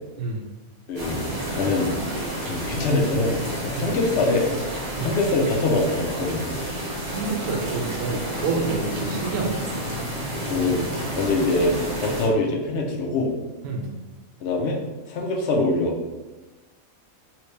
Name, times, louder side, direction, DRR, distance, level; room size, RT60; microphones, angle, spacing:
voice 1, 0.9-1.2 1.5-1.9 2.4-3.4 3.6-4.4 5.0-6.5 10.4-10.8 11.1-13.3 14.4-14.8 15.1-16.2, left 2 dB, 60° left, 0 dB, 0.8 m, -23 dB
sound 1, 0.9-12.3, equal, 35° right, 0.8 m, -30 dB
voice 2, 7.0-9.7 13.6-13.9, right 3 dB, 85° right, 0 dB, 1.0 m, -28 dB
3.0 x 2.8 x 3.2 m, 1.1 s
omnidirectional pair, 1.5 m